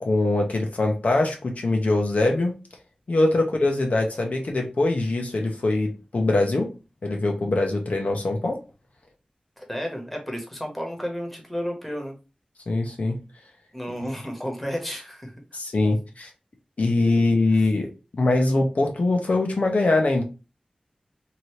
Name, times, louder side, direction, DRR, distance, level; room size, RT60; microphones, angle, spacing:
voice 1, 0.0-2.5 3.1-6.7 7.0-8.6 12.7-13.2 15.5-16.3 16.8-20.2, left 2 dB, 70° left, 2 dB, 0.7 m, -23 dB
voice 2, 9.6-12.1 13.7-15.3, equal, 5° left, 1 dB, 1.0 m, -32 dB
2.9 x 2.6 x 3.1 m, 0.30 s
wide cardioid pair, 75°, 2 cm